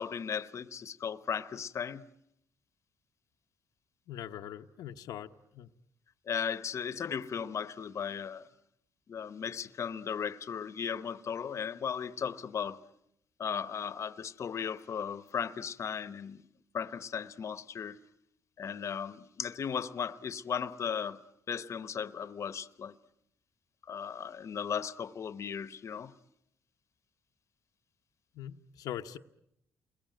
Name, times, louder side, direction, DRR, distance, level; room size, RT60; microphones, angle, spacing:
voice 1, 0.0-2.0 6.3-8.4 9.1-12.8 13.4-16.4 16.7-18.0 18.6-21.2 21.5-23.0 23.9-26.1, left 7 dB, 50° left, 1.0 m, -36 dB
voice 2, 4.1-5.7 28.3-29.2, left 11 dB, 90° left, 1.0 m, -42 dB
29.0 x 22.0 x 9.2 m
cardioid pair, 90°, 6 cm